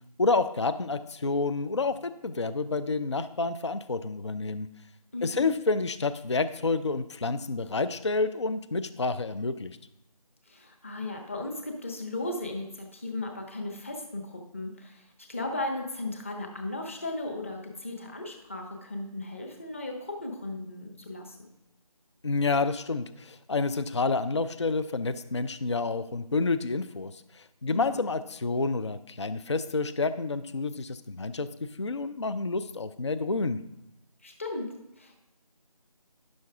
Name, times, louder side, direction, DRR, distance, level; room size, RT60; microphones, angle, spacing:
voice 1, 0.2-4.7 5.2-9.8 22.2-31.5 31.8-33.6, left 3 dB, 45° left, 11 dB, 0.4 m, -29 dB
voice 2, 5.1-5.5 10.5-21.5 27.7-28.0 34.2-34.7 35.0-35.2, left 2 dB, 20° left, 2 dB, 0.8 m, -36 dB
10.5 x 6.4 x 3.5 m, 0.90 s
figure-of-eight pair, 165°, 20 cm